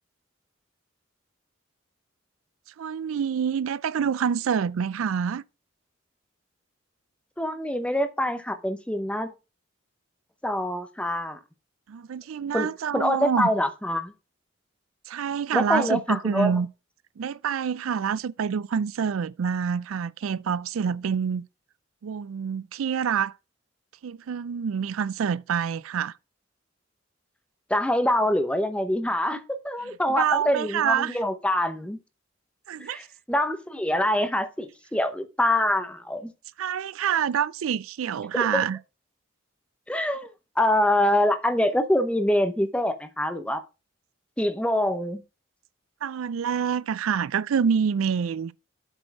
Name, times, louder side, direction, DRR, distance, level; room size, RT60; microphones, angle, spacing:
voice 1, 2.8-5.4 11.9-13.5 15.1-16.7 17.2-21.4 22.0-23.3 24.0-26.1 30.2-31.2 32.7-33.0 36.6-38.8 46.0-48.5, right 7 dB, 85° right, 0.4 m, -27 dB
voice 2, 7.4-9.3 10.4-11.4 12.5-12.7 12.9-14.1 15.5-16.5 27.7-32.0 32.8-36.3 38.3-38.6 39.9-43.6 44.4-45.2, left 1 dB, 5° left, 0.7 m, -25 dB
7.9 x 4.3 x 5.8 m
head